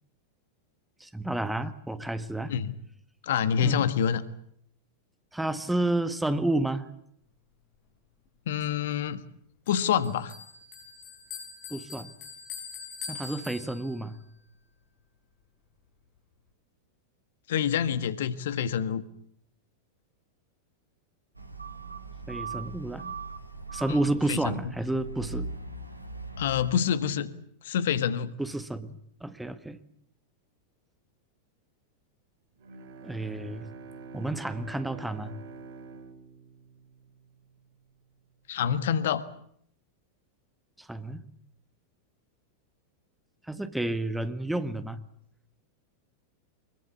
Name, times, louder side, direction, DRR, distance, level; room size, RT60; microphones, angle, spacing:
voice 1, 1.0-2.5 3.6-3.8 5.3-6.9 11.7-12.1 13.1-14.2 22.3-23.1 23.7-25.5 28.4-29.8 33.0-33.7 34.1-35.4 40.8-41.2 43.5-45.0, right 2 dB, 5° right, 11 dB, 1.7 m, -30 dB
voice 2, 3.2-4.2 8.5-9.2 9.7-10.3 17.5-19.0 24.3-24.6 26.4-27.3 27.6-28.3 38.5-39.2, left 8 dB, 60° left, 14 dB, 1.5 m, -27 dB
Bell, 9.7-14.2, left 6 dB, 40° left, 7.7 m, -43 dB
sound 1, 21.3-26.7, right 3 dB, 85° right, 2.2 m, -39 dB
Bowed string instrument, 32.6-37.7, right 4 dB, 55° right, 2.5 m, -46 dB
24.5 x 22.5 x 8.3 m, 0.68 s
figure-of-eight pair, 90°, 0 cm